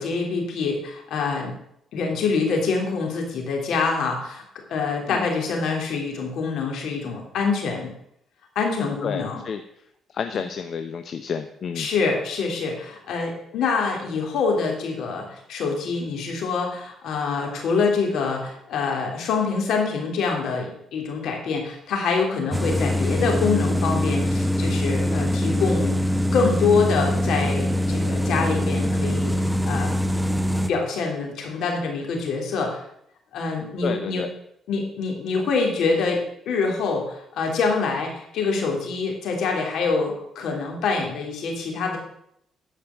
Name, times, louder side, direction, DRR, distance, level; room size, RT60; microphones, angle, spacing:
voice 1, 0.0-1.5 1.9-4.4 4.7-7.9 8.5-9.4 11.7-26.0 26.3-29.9 30.7-32.8 33.3-34.2 34.7-42.0, left 4 dB, 80° left, 1 dB, 3.0 m, -25 dB
voice 2, 9.0-9.6 10.1-11.9 33.8-34.3, left 6 dB, 55° left, 8 dB, 0.7 m, -30 dB
sound 1, 22.5-30.7, equal, ahead, 0.7 m, -23 dB
12.0 x 5.1 x 7.0 m, 0.74 s
cardioid pair, 90°, 0 cm